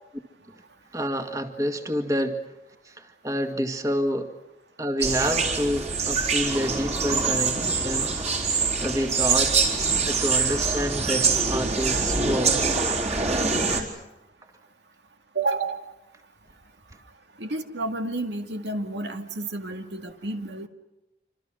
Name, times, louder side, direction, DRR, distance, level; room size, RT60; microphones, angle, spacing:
voice 1, 0.9-2.3 2.9-4.3 4.8-8.1 8.5-9.5 10.1-12.5, equal, 20° right, 6 dB, 2.0 m, -28 dB
sound 1, 5.0-13.8, right 4 dB, 35° right, 4.2 m, -24 dB
voice 2, 15.3-15.9 17.4-20.7, right 3 dB, 75° right, 6 dB, 2.3 m, -30 dB
27.5 x 26.5 x 6.4 m, 0.96 s
head